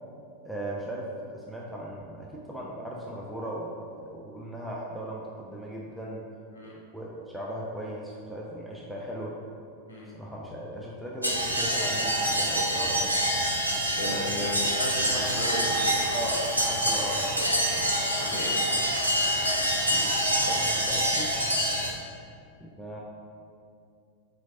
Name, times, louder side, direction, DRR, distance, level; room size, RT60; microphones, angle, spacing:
voice 1, 0.4-6.3 6.9-9.4 10.1-13.2 16.1-16.4 16.7-17.3 19.9-21.3 22.6-23.0, right 1 dB, 5° right, -4 dB, 0.4 m, -38 dB
sound 1, 11.2-21.9, equal, 90° right, 0.4 m, -26 dB
voice 2, 14.0-16.0 18.0-18.5, left 1 dB, 70° left, -5 dB, 0.7 m, -34 dB
Applause, 14.0-21.9, left 1 dB, 40° left, 0.9 m, -44 dB
4.0 x 3.0 x 2.7 m, 2.4 s
figure-of-eight pair, 90°, 0 cm